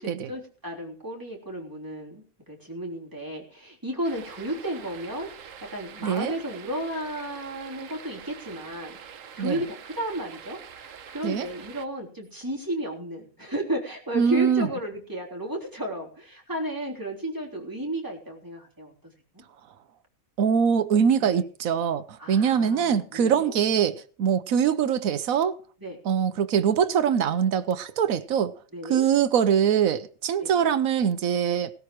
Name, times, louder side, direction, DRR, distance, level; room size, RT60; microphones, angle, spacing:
voice 1, 0.0-9.0 9.4-18.9 19.3-19.4 21.2-21.4 22.2-23.5 25.8-26.0 28.7-29.0 30.4-30.5, right 1 dB, 15° right, 3.5 m, -33 dB
sound 1, 4.0-11.9, right 7 dB, 70° right, 1.3 m, -45 dB
voice 2, 6.0-6.3 9.4-9.6 11.2-11.5 14.1-14.7 20.4-25.6 26.0-28.5 28.8-31.7, right 7 dB, 90° right, 1.3 m, -23 dB
18.0 x 13.0 x 3.1 m
omnidirectional pair, 1.4 m